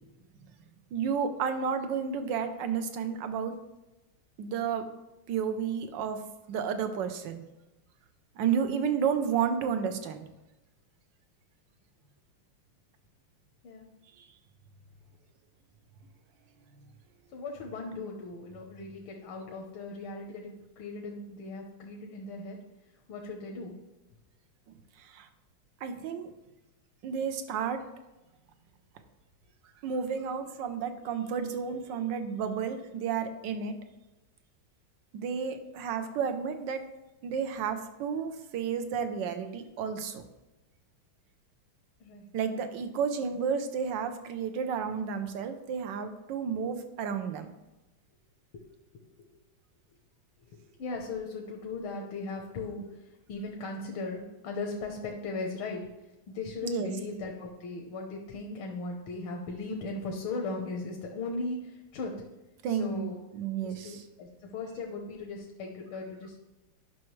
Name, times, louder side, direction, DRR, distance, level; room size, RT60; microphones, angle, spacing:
voice 1, 0.9-3.6 4.4-4.9 5.3-6.2 6.5-7.4 8.4-10.3 14.2-14.3 25.0-25.3 25.8-26.3 27.0-27.8 29.8-33.7 35.1-36.8 37.2-40.2 42.3-47.5 56.6-56.9 62.6-64.0, right 7 dB, 70° right, 8 dB, 1.4 m, -31 dB
voice 2, 17.3-22.6 23.1-23.7 42.0-42.3 43.2-43.4 50.5-55.9 56.3-62.1 62.7-63.2 63.8-66.4, left 3 dB, 90° left, 0 dB, 1.9 m, -38 dB
10.5 x 5.9 x 3.2 m, 1.0 s
omnidirectional pair, 2.3 m